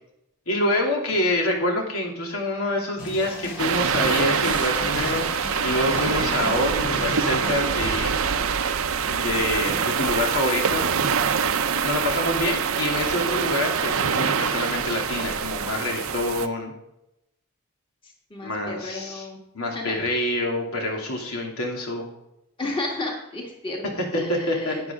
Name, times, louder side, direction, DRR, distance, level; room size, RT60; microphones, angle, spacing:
voice 1, 0.5-5.3 5.6-8.2 9.1-11.0 11.8-16.7 18.4-19.3 19.5-22.1 24.0-24.7, left 1 dB, 85° left, 0 dB, 2.9 m, -26 dB
sound 1, 3.0-9.0, left 2 dB, 55° left, 2.9 m, -36 dB
sound 2, 3.6-16.5, right 6 dB, 75° right, 0.7 m, -25 dB
voice 2, 18.3-19.4 19.7-20.0 22.6-24.8, left 2 dB, 25° left, 0 dB, 1.7 m, -32 dB
12.0 x 9.5 x 3.7 m, 0.86 s
head